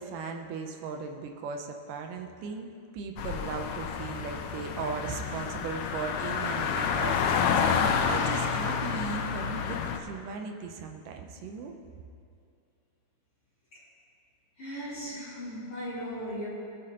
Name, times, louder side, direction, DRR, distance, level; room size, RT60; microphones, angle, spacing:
voice 1, 0.0-2.7 2.9-11.8, right 5 dB, 80° right, 4 dB, 2.3 m, -37 dB
sound 1, 3.2-10.0, left 6 dB, 85° left, 1.5 m, -29 dB
voice 2, 14.6-16.5, equal, 45° left, -12 dB, 3.5 m, -37 dB
20.5 x 8.5 x 2.9 m, 2.4 s
omnidirectional pair, 3.8 m